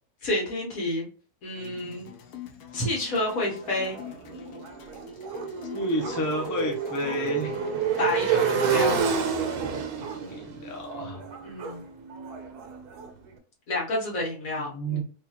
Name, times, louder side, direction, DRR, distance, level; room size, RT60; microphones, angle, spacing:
voice 1, 0.2-1.1 1.4-2.1 2.7-4.0 8.0-9.0 11.4-11.8 13.7-15.0, left 1 dB, 60° left, -3 dB, 1.6 m, -29 dB
sound 1, 1.6-8.2, left 7 dB, 75° left, 1.2 m, -45 dB
Motorcycle, 3.3-13.1, right 6 dB, 80° right, 1.2 m, -29 dB
sound 2, 4.8-5.6 6.0-8.2 8.6-10.5 10.7-10.8 11.2-11.8 12.2-13.1, right 4 dB, 65° right, 0.8 m, -42 dB
voice 2, 5.4-7.5 9.9-11.2 14.5-15.0, right 1 dB, 30° left, 0 dB, 0.3 m, -31 dB
4.5 x 2.4 x 2.9 m, 0.39 s
omnidirectional pair, 1.6 m